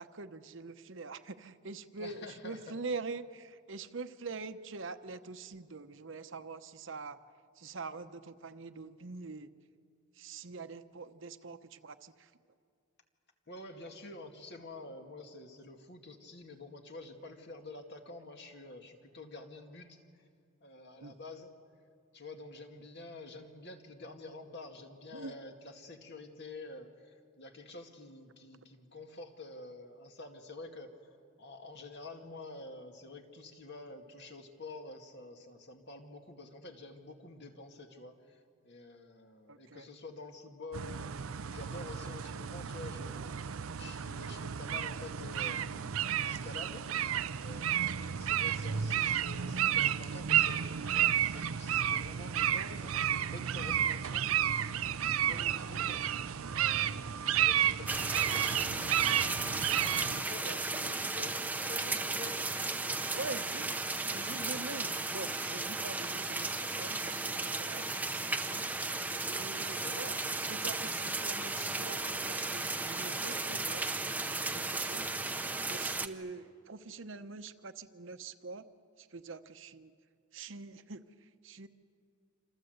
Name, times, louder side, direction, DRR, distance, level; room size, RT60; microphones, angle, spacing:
voice 1, 0.0-7.2 7.6-9.5 10.2-12.3 21.0-21.1 25.1-25.3 39.5-39.9 60.4-60.6 63.1-63.8 64.1-68.6 69.3-73.8 74.5-75.1 75.7-78.6 79.0-79.9 80.3-81.7, right 3 dB, 65° right, 10 dB, 0.9 m, -44 dB
voice 2, 2.0-2.6 13.5-20.0 20.6-21.5 22.1-31.0 31.4-46.9 47.3-54.6 55.1-56.0 56.4-59.5 60.2-62.5 69.7-70.0, left 2 dB, 55° left, 4 dB, 2.3 m, -48 dB
sound 1, 40.7-60.2, right 10 dB, 85° right, 0.6 m, -32 dB
sound 2, 57.9-76.1, right 3 dB, 10° right, 0.8 m, -35 dB
27.0 x 27.0 x 8.0 m, 2.3 s
head